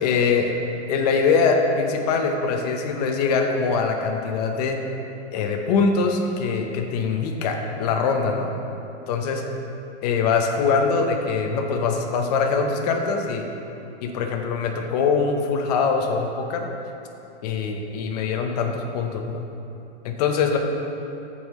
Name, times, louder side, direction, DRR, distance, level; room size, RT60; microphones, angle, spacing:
voice 1, 0.0-0.5 0.9-4.8 5.3-8.5 9.1-9.4 10.0-13.5 14.0-16.7 17.4-19.4 20.0-20.6, left 5 dB, 35° left, 3 dB, 0.8 m, -23 dB
13.5 x 5.5 x 3.1 m, 2.8 s
hypercardioid pair, 160°, 35 cm